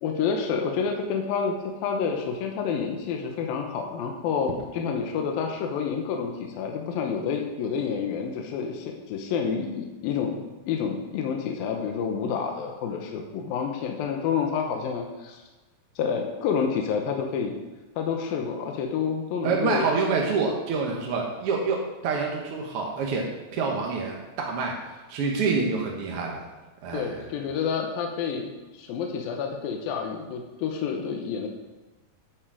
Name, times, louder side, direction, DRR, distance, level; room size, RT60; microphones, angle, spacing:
voice 1, 0.0-10.4 10.7-15.4 16.0-17.6 18.0-19.9 26.9-31.5, left 6 dB, 75° left, 3 dB, 2.7 m, -29 dB
voice 2, 19.4-23.3 23.5-24.8 25.1-26.4 26.8-27.3, right 4 dB, 65° right, 0 dB, 1.4 m, -27 dB
10.0 x 8.8 x 4.9 m, 1.2 s
omnidirectional pair, 4.3 m